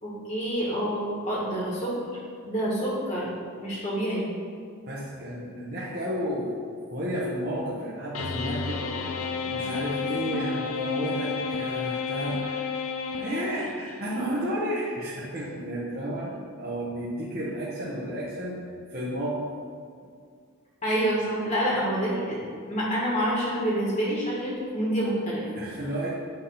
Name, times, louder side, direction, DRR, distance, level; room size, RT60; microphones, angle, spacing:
voice 1, 0.0-1.9 2.4-3.3 3.6-4.2 20.8-22.4 22.7-25.5, equal, 30° left, -6 dB, 1.9 m, -27 dB
voice 2, 4.9-9.1 9.5-12.7 13.1-16.3 16.6-19.5 25.6-26.1, equal, 40° right, -7 dB, 1.2 m, -32 dB
sound 1, 8.1-13.9, left 5 dB, 70° left, 0.6 m, -31 dB
9.2 x 3.7 x 5.7 m, 2.2 s
head